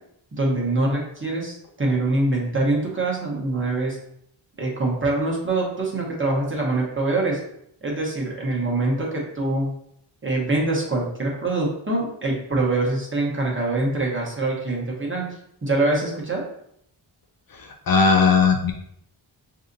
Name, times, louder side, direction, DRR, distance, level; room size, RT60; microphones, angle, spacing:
voice 1, 0.3-4.0 4.6-7.4 7.8-9.8 10.2-16.4, right 2 dB, 25° right, -2 dB, 1.0 m, -24 dB
voice 2, 17.5-18.7, left 5 dB, 50° left, 2 dB, 0.5 m, -18 dB
6.2 x 2.7 x 2.6 m, 0.73 s
wide cardioid pair, 160°, 46 cm